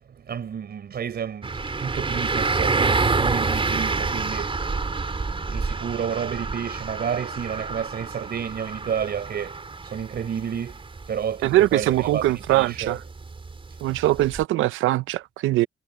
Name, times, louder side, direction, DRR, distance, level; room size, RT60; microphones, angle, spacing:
voice 1, 0.2-4.6 5.5-10.8 11.1-13.0, right 8 dB, 55° right, 4.5 m, -31 dB
sound 1, 1.4-14.4, right 4 dB, 25° right, 4.3 m, -28 dB
voice 2, 11.4-13.0 13.8-15.7, right 16 dB, 90° right, 0.7 m, -22 dB
cardioid pair, 90°, 20 cm